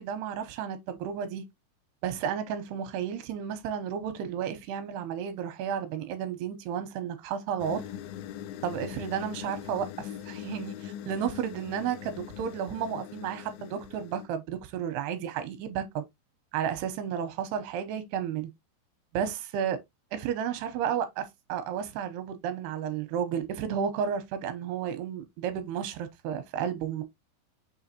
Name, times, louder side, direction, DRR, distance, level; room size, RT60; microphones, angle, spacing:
voice 1, 0.0-1.4 2.0-7.8 8.6-16.0 16.5-18.5 19.1-19.8 20.1-27.0, right 8 dB, 85° right, 2.8 m, -32 dB
sound 1, 7.6-14.3, left 11 dB, 85° left, 2.1 m, -41 dB
6.8 x 2.8 x 2.7 m
omnidirectional pair, 4.5 m